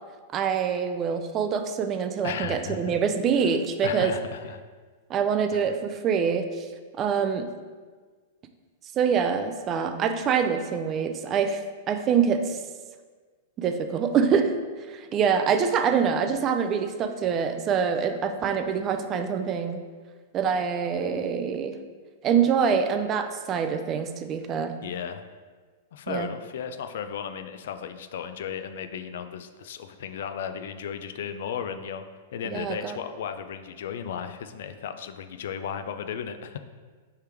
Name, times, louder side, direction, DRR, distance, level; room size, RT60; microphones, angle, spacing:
voice 1, 0.3-4.1 5.1-6.7 7.0-7.5 9.0-11.6 11.9-12.6 13.6-14.5 14.9-19.8 20.3-21.8 22.2-24.8 26.1-26.3 32.5-33.0, right 6 dB, 30° right, 7 dB, 0.3 m, -25 dB
voice 2, 2.2-3.0 3.4-3.5 3.8-4.6 5.5-5.7 24.8-25.3 25.9-32.1 32.3-36.6, left 7 dB, 70° left, 9 dB, 0.3 m, -35 dB
4.5 x 3.3 x 3.4 m, 1.5 s
hypercardioid pair, 135°, 0 cm